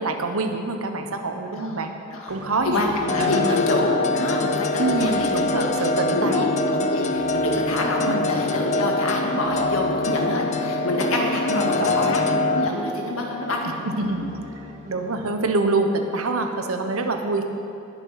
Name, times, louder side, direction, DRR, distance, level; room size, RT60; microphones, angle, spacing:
voice 1, 0.0-1.9 2.3-2.8 3.2-3.6 4.8-6.5 8.0-8.3 11.5-12.2 13.8-14.2 14.9-17.4, right 2 dB, 80° right, 5 dB, 1.2 m, -26 dB
voice 2, 1.5-2.3 2.6-13.7 14.0-14.3, left 2 dB, 75° left, 0 dB, 2.1 m, -26 dB
sound 1, 2.3-15.6, right 1 dB, 35° right, 1.8 m, -42 dB
sound 2, 3.1-12.7, left 2 dB, 35° left, 0.5 m, -24 dB
19.5 x 7.2 x 5.8 m, 2.8 s
head